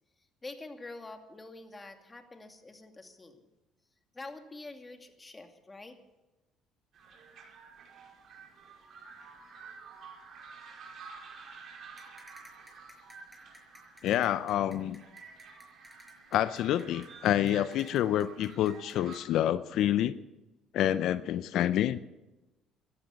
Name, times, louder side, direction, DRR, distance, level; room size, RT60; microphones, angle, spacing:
voice 1, 0.4-3.5 4.1-6.0, left 2 dB, 20° left, 5 dB, 2.4 m, -46 dB
sound 1, 6.9-19.2, right 5 dB, 60° right, 5.1 m, -51 dB
sound 2, 12.0-19.2, left 1 dB, 5° left, 5.3 m, -55 dB
voice 2, 14.0-15.0 16.3-20.2 20.7-22.0, left 11 dB, 70° left, 15 dB, 0.6 m, -28 dB
16.5 x 12.5 x 7.0 m, 1.0 s
supercardioid pair, 75°, 0 cm